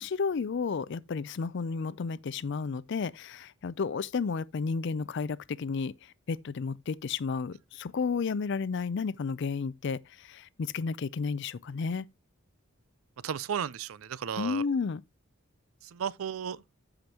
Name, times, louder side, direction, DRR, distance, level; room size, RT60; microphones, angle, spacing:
voice 1, 0.0-5.9 6.3-12.1 14.4-15.0, left 5 dB, 55° left, 0.4 m, -32 dB
voice 2, 13.2-14.6 15.8-16.6, right 8 dB, 80° right, 0.4 m, -34 dB
14.0 x 5.0 x 2.8 m
head